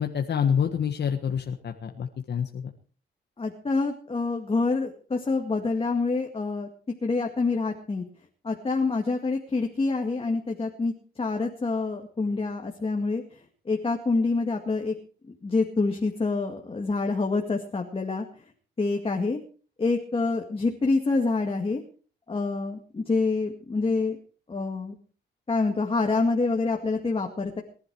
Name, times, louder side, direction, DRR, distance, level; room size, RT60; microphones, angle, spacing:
voice 1, 0.0-2.7, left 7 dB, 60° left, 4 dB, 1.6 m, -27 dB
voice 2, 3.4-6.7 7.0-8.0 8.4-10.9 11.2-13.2 13.7-14.9 15.3-18.3 18.8-19.4 19.8-21.8 22.3-24.2 24.5-25.0 25.5-27.6, left 3 dB, 30° left, 2 dB, 2.1 m, -26 dB
22.0 x 11.5 x 4.8 m, 0.41 s
cardioid pair, 110°, 20 cm